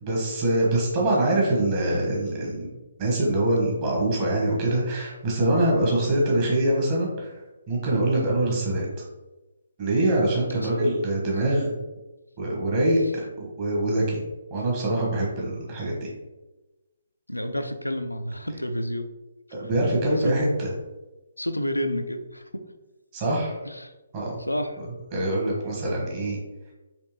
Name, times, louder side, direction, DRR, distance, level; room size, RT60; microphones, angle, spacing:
voice 1, 0.0-2.7 3.0-7.3 7.7-8.9 9.8-11.7 12.4-14.2 14.5-16.1 19.5-20.7 23.1-23.6 24.1-24.4 25.1-26.4, right 1 dB, 30° right, -3 dB, 1.4 m, -24 dB
voice 2, 10.5-10.9 17.3-19.1 20.2-20.3 21.4-22.4 23.7-23.9 24.4-24.8, equal, 85° left, 7 dB, 0.4 m, -29 dB
4.3 x 3.2 x 3.2 m, 1.1 s
figure-of-eight pair, 135°, 0 cm